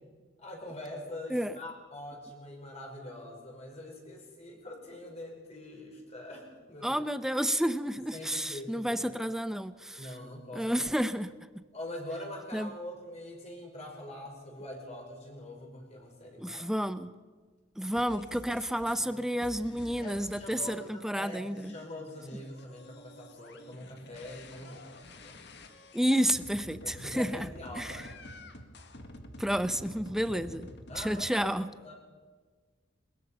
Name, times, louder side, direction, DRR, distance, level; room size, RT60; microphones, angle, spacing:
voice 1, 0.4-7.0 8.1-9.1 10.0-10.7 11.7-16.6 17.8-18.0 20.0-24.9 25.2-25.4 26.8-28.3 30.3-30.4 30.9-31.5 31.8-31.9, left 1 dB, 35° left, 0 dB, 5.3 m, -44 dB
voice 2, 6.8-10.1 10.5-11.3 12.5-12.7 16.4-17.1 17.8-21.7 25.9-27.5 27.8-28.0 29.4-30.7 31.0-31.7, equal, ahead, 12 dB, 0.7 m, -30 dB
sound 1, 18.0-20.9 21.3-31.3, left 1 dB, 60° left, 1.9 m, -49 dB
21.5 x 21.0 x 5.7 m, 1.4 s
head